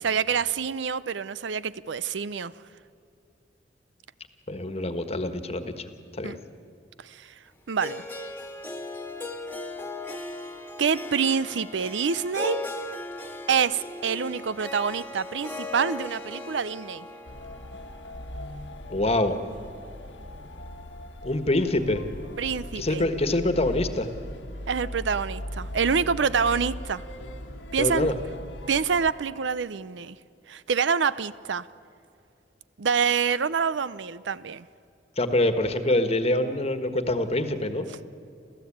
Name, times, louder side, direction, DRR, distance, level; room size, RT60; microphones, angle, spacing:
voice 1, 0.0-2.5 6.2-6.4 7.0-7.3 7.7-8.0 10.8-12.6 13.5-17.1 22.4-23.1 24.7-27.0 27.7-28.1 28.7-30.2 30.5-31.7 32.8-34.6, right 6 dB, 80° right, 0.6 m, -26 dB
voice 2, 4.5-5.8 6.2-6.4 18.9-19.3 21.2-22.0 22.7-24.1 27.8-28.1 35.2-37.9, left 1 dB, 35° left, 1.5 m, -25 dB
Harp, 7.8-19.9, left 2 dB, 10° left, 1.7 m, -38 dB
sound 1, 17.3-29.1, left 1 dB, 85° left, 1.6 m, -39 dB
29.0 x 14.5 x 8.7 m
head